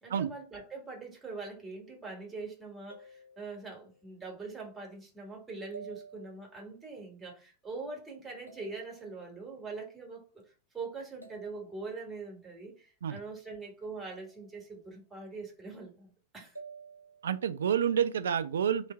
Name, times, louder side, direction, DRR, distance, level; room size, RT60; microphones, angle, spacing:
voice 1, 0.0-10.4 10.7-16.6, right 3 dB, 10° right, 1.7 m, -43 dB
sound 1, 2.9-4.2 5.7-6.8 8.5-9.5 11.2-12.3 13.8-14.7 16.5-17.6, right 4 dB, 85° right, 0.7 m, -52 dB
voice 2, 17.2-18.9, right 8 dB, 65° right, 0.3 m, -29 dB
3.1 x 3.1 x 4.2 m
figure-of-eight pair, 90°, 0 cm